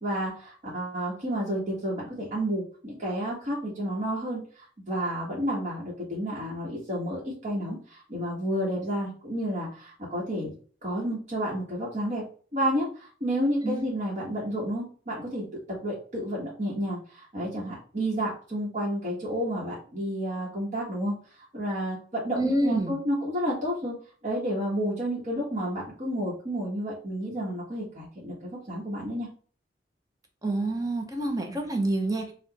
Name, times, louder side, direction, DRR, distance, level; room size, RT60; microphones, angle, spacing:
voice 1, 0.0-10.5 10.8-12.2 12.5-21.1 21.5-23.9 24.2-29.3, equal, 40° right, -6 dB, 1.3 m, -31 dB
voice 2, 22.4-22.9 30.4-32.3, right 1 dB, 20° right, 2 dB, 0.9 m, -27 dB
4.8 x 2.5 x 4.0 m, 0.41 s
head